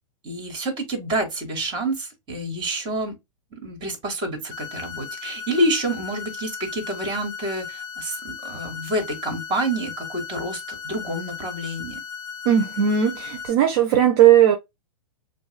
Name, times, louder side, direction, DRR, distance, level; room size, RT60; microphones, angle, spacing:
voice 1, 0.2-3.1 3.6-12.0, right 1 dB, 25° right, 2.6 m, -28 dB
sound 1, 4.5-13.5, left 6 dB, 20° left, 1.8 m, -36 dB
voice 2, 12.4-14.6, right 10 dB, 50° right, 0.8 m, -17 dB
7.0 x 2.6 x 2.2 m
hypercardioid pair, 115°, 18 cm